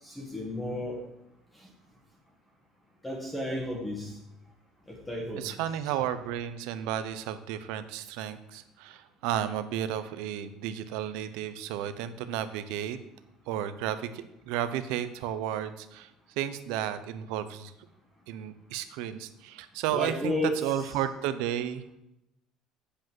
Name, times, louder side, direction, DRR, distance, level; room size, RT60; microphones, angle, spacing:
voice 1, 0.0-1.0 1.5-1.7 3.0-4.2 4.9-5.4 19.9-20.6, left 1 dB, 5° left, -1 dB, 1.4 m, -33 dB
voice 2, 5.4-13.0 13.5-16.1 16.4-17.7 18.3-21.9, right 10 dB, 80° right, 11 dB, 0.7 m, -33 dB
8.4 x 5.1 x 7.6 m, 0.85 s
cardioid pair, 165°, 0 cm